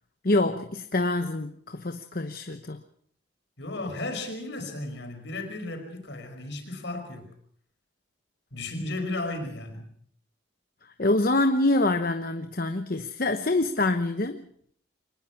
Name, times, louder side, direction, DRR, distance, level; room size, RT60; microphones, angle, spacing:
voice 1, 0.2-2.8 11.0-14.5, left 2 dB, 45° left, 7 dB, 1.0 m, -25 dB
voice 2, 3.6-7.3 8.5-9.9, left 2 dB, 65° left, 5 dB, 5.2 m, -34 dB
23.5 x 20.0 x 5.9 m, 0.65 s
head